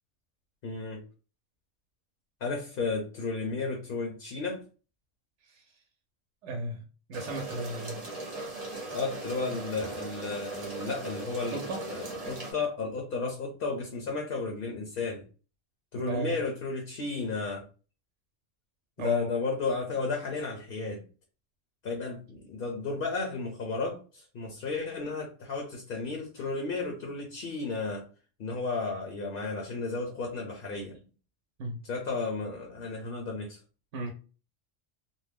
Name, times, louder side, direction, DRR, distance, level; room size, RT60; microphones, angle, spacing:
voice 1, 0.6-1.0 2.4-4.6 8.9-15.2 15.9-17.7 19.0-21.0 21.8-28.1 28.4-31.0 31.8-33.6, left 4 dB, 55° left, 0.8 m, -33 dB
voice 2, 6.4-8.0 11.5-11.9 15.9-16.4 19.0-19.3 31.6-31.8 33.9-34.1, right 2 dB, 75° right, 0.9 m, -35 dB
sound 1, 7.1-12.5, right 2 dB, 35° right, 0.8 m, -39 dB
2.6 x 2.1 x 3.3 m
omnidirectional pair, 1.2 m